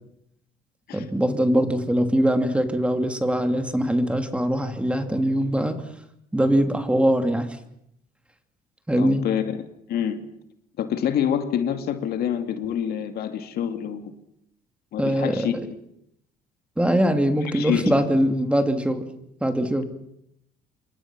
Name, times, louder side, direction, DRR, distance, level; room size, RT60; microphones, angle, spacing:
voice 1, 0.9-5.8 6.3-7.6 8.9-9.2 15.0-15.4 16.8-19.0 19.4-19.8, equal, 5° right, 7 dB, 2.7 m, -22 dB
voice 2, 9.0-9.4 9.9-10.2 10.8-14.1 14.9-15.8 17.4-17.9, left 9 dB, 70° left, 7 dB, 2.4 m, -26 dB
28.0 x 23.5 x 6.2 m, 0.77 s
cardioid pair, 110°, 17 cm